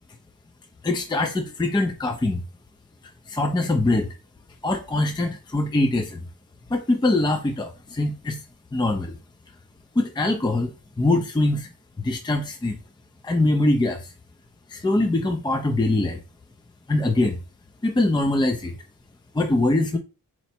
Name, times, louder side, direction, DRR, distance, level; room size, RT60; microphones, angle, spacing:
voice 1, 0.8-2.4 3.3-4.1 4.6-6.3 6.7-8.4 8.7-9.1 10.0-11.7 12.0-12.8 13.2-14.1 14.7-16.2 16.9-17.4 17.8-18.7 19.3-20.0, left 2 dB, 15° left, 0.5 m, -23 dB
4.3 x 2.0 x 4.2 m
wide cardioid pair, 80°, 34 cm